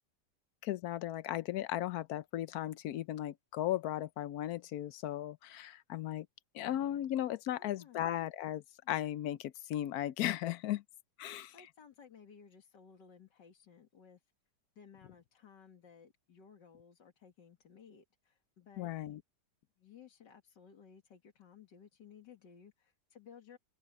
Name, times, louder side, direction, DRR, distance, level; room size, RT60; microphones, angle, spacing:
voice 1, 0.6-6.3 6.5-10.8 11.2-11.5 18.8-19.2, left 13 dB, 70° left, 1.1 m, -36 dB
voice 2, 7.5-8.1 11.5-14.2 14.8-19.0 19.8-23.6, left 7 dB, 90° left, 2.5 m, -58 dB
omnidirectional pair, 1.8 m